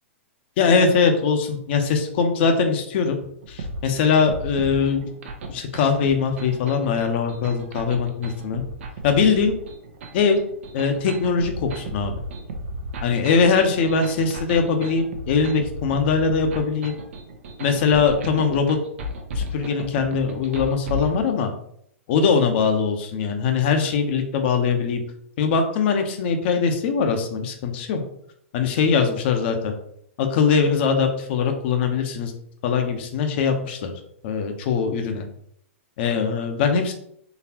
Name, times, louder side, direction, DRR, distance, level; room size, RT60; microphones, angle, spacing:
voice 1, 0.6-3.2 3.5-5.2 5.5-8.6 9.0-9.6 10.1-10.4 10.7-12.2 13.0-17.0 17.6-18.8 19.3-21.5 22.1-25.0 25.4-28.0 28.5-29.7 30.2-32.3 32.6-33.9 34.2-35.3 36.0-36.9, left 5 dB, 50° left, 6 dB, 0.8 m, -21 dB
sound 1, 3.4-21.2, equal, 65° right, 0.7 m, -34 dB
4.0 x 3.2 x 2.9 m, 0.70 s
hypercardioid pair, 115°, 7 cm